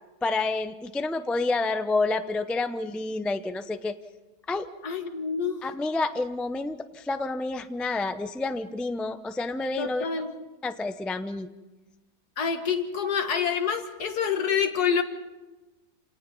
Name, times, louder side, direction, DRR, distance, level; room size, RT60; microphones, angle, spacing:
voice 1, 0.2-4.0 4.5-4.7 5.6-10.1 10.6-11.5, left 3 dB, ahead, 9 dB, 0.3 m, -29 dB
voice 2, 4.8-5.6 9.8-10.3 12.4-15.0, left 7 dB, 80° left, 6 dB, 2.2 m, -27 dB
28.0 x 18.0 x 5.4 m, 1.1 s
omnidirectional pair, 1.7 m